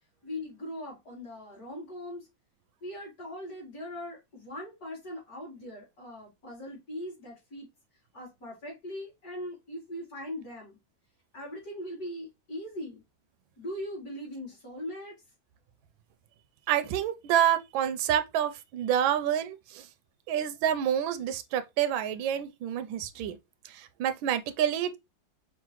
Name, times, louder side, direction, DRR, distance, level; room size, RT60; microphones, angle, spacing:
voice 1, 0.2-2.3 2.8-7.7 8.1-10.8 11.3-13.0 13.6-15.1, left 1 dB, 50° left, 3.1 m, -40 dB
voice 2, 16.7-19.9 20.3-23.4 23.6-25.0, right 10 dB, 85° right, 1.3 m, -28 dB
5.7 x 2.5 x 3.0 m
omnidirectional pair, 2.1 m